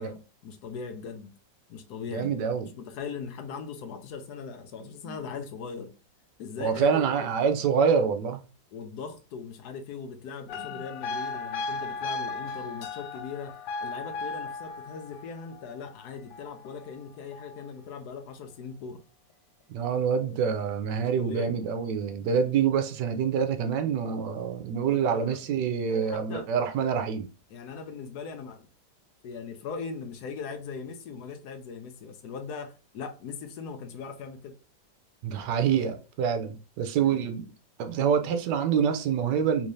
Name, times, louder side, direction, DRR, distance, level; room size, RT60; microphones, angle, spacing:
voice 1, 0.0-1.3 1.7-5.9 6.4-7.0 8.7-19.0 21.0-21.5 24.8-25.4 25.8-26.5 27.5-28.7 29.2-34.6 37.0-37.3, left 5 dB, 70° left, 1.0 m, -40 dB
voice 2, 2.1-2.7 5.0-5.2 6.6-8.4 19.7-27.3 35.2-37.4 37.8-39.7, right 7 dB, 75° right, 1.1 m, -26 dB
sound 1, 10.5-17.7 20.1-20.4, left 3 dB, 90° left, 1.4 m, -37 dB
3.5 x 3.2 x 2.6 m
omnidirectional pair, 2.1 m